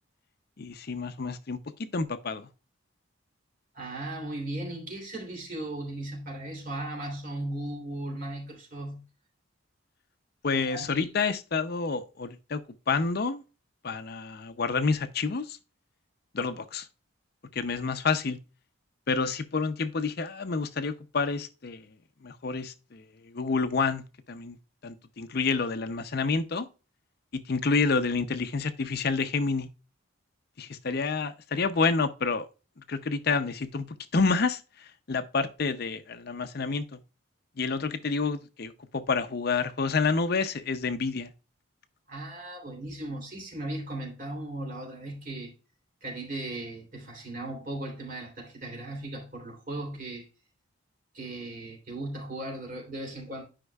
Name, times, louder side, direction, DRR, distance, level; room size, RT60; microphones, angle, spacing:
voice 1, 0.6-1.6 1.9-2.5 10.4-12.6 12.9-13.4 13.8-15.6 16.3-16.9 17.5-18.4 19.1-21.9 22.2-24.6 24.8-26.7 27.3-29.7 30.6-32.5 32.9-33.9 34.1-37.0 37.6-41.3, left 4 dB, 50° left, 0.5 m, -29 dB
voice 2, 3.7-9.0 10.5-11.1 42.1-45.5 46.0-50.2 51.1-53.4, right 1 dB, 40° right, 3.0 m, -37 dB
11.5 x 5.3 x 2.3 m
head